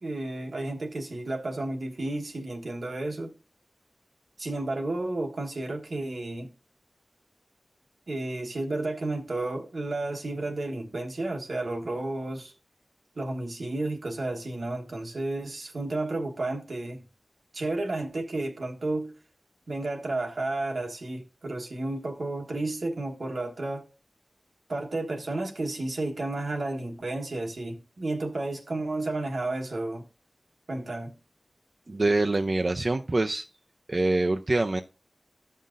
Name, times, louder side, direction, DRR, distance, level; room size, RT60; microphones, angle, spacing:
voice 1, 0.0-3.3 4.4-6.5 8.1-12.5 13.1-17.0 17.5-19.1 19.7-23.8 24.7-30.1 30.7-31.2, right 2 dB, 85° right, 1.3 m, -32 dB
voice 2, 31.9-33.4 33.9-34.8, right 2 dB, 55° right, 0.5 m, -25 dB
13.0 x 5.6 x 2.5 m
wide cardioid pair, 45°, 0 cm